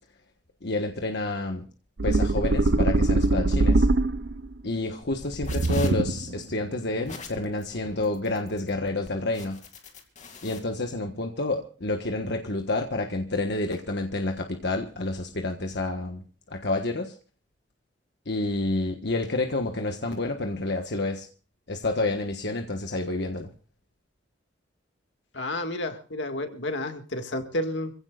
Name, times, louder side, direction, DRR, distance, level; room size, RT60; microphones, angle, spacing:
voice 1, 0.6-1.7 2.0-3.9 4.6-9.6 10.4-17.1 18.3-21.3 21.7-23.5, left 2 dB, 65° left, 4 dB, 1.4 m, -29 dB
sound 1, 2.0-4.5 5.4-6.4, right 2 dB, 65° right, 0.8 m, -22 dB
sound 2, 5.0-10.6, left 4 dB, 45° left, 2.6 m, -43 dB
voice 2, 25.3-27.9, left 1 dB, 85° left, 6 dB, 2.0 m, -31 dB
26.5 x 16.0 x 2.5 m, 0.36 s
head